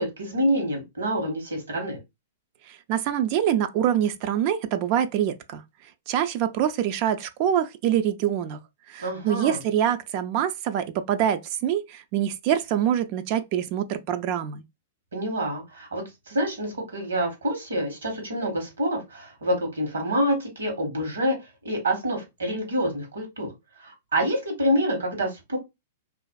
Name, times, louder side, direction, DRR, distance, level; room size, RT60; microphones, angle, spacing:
voice 1, 0.0-2.0 9.0-9.6 15.1-21.4 21.6-23.5 23.8-25.6, equal, 85° right, 1.2 m, -27 dB
voice 2, 2.7-5.6 6.1-8.6 8.9-14.6, right 10 dB, 45° right, 0.3 m, -25 dB
2.5 x 2.4 x 2.2 m
hypercardioid pair, 115°, 0 cm